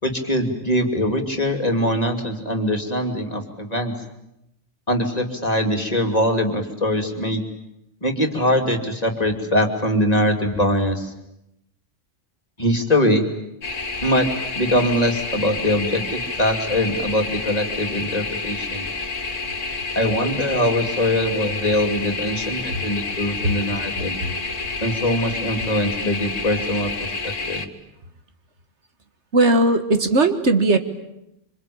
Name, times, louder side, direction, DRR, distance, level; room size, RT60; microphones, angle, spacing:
voice 1, 0.0-3.9 4.9-7.4 8.0-11.1 12.6-13.2 14.0-14.3 14.5-18.9 19.9-24.2 24.8-27.7, left 1 dB, 30° left, 3 dB, 3.0 m, -22 dB
sound 1, 13.6-27.7, left 3 dB, 75° left, 1.9 m, -29 dB
voice 2, 29.3-30.8, right 2 dB, 65° right, 8 dB, 1.9 m, -18 dB
26.5 x 25.5 x 8.7 m, 0.86 s
omnidirectional pair, 1.3 m